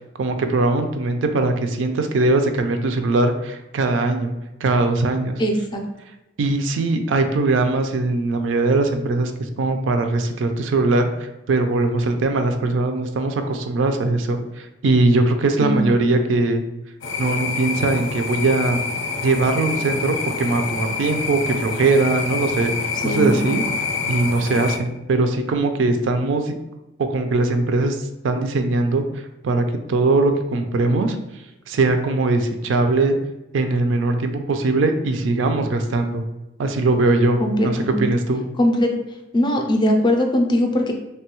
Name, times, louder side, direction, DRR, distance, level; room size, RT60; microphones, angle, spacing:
voice 1, 0.2-4.3 4.6-5.4 6.4-9.3 9.6-16.6 17.2-18.8 19.2-22.7 23.0-23.6 24.1-26.5 27.0-29.0 29.4-31.2 31.7-33.2 33.5-36.2 36.6-37.4 37.6-38.4, right 2 dB, 80° right, 7 dB, 0.4 m, -20 dB
voice 2, 5.4-5.8 15.6-15.8 23.0-23.4 37.4-38.0 38.6-38.9 39.3-40.9, left 1 dB, 25° left, 3 dB, 0.4 m, -20 dB
sound 1, 17.0-24.8, left 4 dB, 90° left, 0.4 m, -27 dB
2.9 x 2.2 x 2.9 m, 0.97 s
head